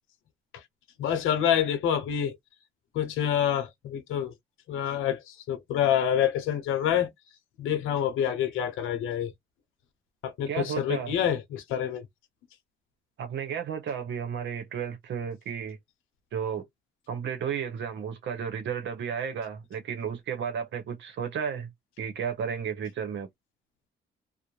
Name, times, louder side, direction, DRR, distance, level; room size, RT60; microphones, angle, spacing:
voice 1, 1.0-2.4 2.9-4.3 4.7-7.1 7.6-9.3 10.2-12.1, left 9 dB, 90° left, 0.7 m, -27 dB
voice 2, 10.5-11.1 13.2-15.8 16.3-16.7 17.1-21.7 22.0-23.3, right 7 dB, 65° right, 0.8 m, -33 dB
2.5 x 2.1 x 3.0 m
cardioid pair, 90°, 20 cm